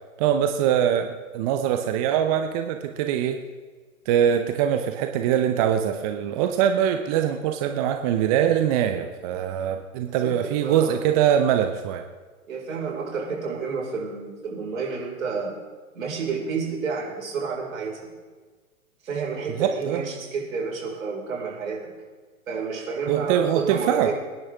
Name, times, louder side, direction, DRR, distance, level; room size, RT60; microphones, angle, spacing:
voice 1, 0.2-3.4 4.1-12.0 19.6-20.0 23.1-24.1, right 9 dB, 25° right, 6 dB, 0.7 m, -23 dB
voice 2, 10.0-11.0 12.5-15.6 15.9-18.1 19.0-21.9 22.5-24.2, right 5 dB, 65° right, -2 dB, 5.0 m, -30 dB
25.5 x 10.5 x 3.5 m, 1.4 s
figure-of-eight pair, 125°, 43 cm